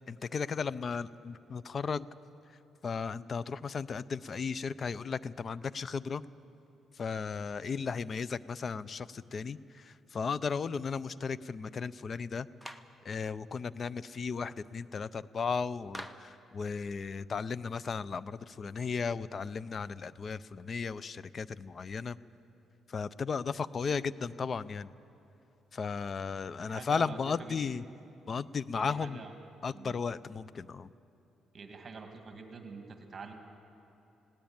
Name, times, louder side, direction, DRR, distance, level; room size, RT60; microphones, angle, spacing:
voice 1, 0.0-2.1 2.8-6.2 6.9-12.5 13.0-22.2 22.9-24.9 25.7-27.8 28.3-29.2 29.6-30.9, left 5 dB, 45° left, 19 dB, 0.5 m, -35 dB
Clapping, 12.6-13.0 15.9-16.4, equal, 5° left, 1.0 m, -44 dB
voice 2, 26.6-27.6 28.8-29.3 29.7-30.0 30.3-30.4 31.5-33.3, right 4 dB, 40° right, 4 dB, 2.1 m, -46 dB
20.0 x 17.5 x 8.8 m, 2.9 s
cardioid pair, 90°, 0 cm